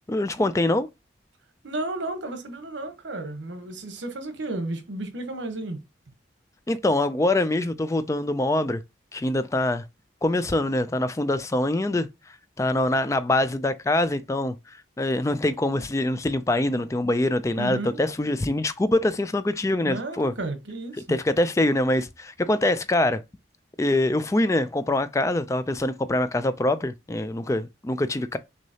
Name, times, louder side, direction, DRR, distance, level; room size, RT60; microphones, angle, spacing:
voice 1, 0.1-0.9 6.7-8.8 9.1-9.8 10.2-12.1 12.6-20.3 21.1-23.2 23.8-28.4, left 1 dB, 15° left, 0.3 m, -24 dB
voice 2, 1.6-5.8 17.6-18.0 19.8-21.0, right 2 dB, 75° right, 1.1 m, -33 dB
6.1 x 2.8 x 2.8 m
head